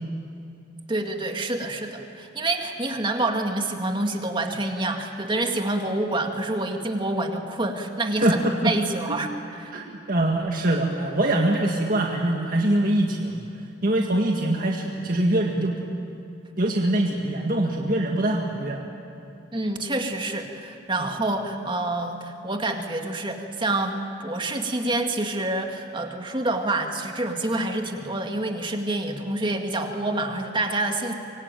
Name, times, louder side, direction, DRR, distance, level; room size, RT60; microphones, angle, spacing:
voice 1, 0.9-9.7 19.5-31.1, right 2 dB, 25° right, 4 dB, 2.1 m, -27 dB
voice 2, 8.2-8.7 9.1-9.2 9.7-13.4 13.8-15.8 16.6-18.8 21.0-21.1, right 1 dB, 50° right, 0 dB, 2.0 m, -23 dB
25.5 x 23.5 x 9.1 m, 2.7 s
head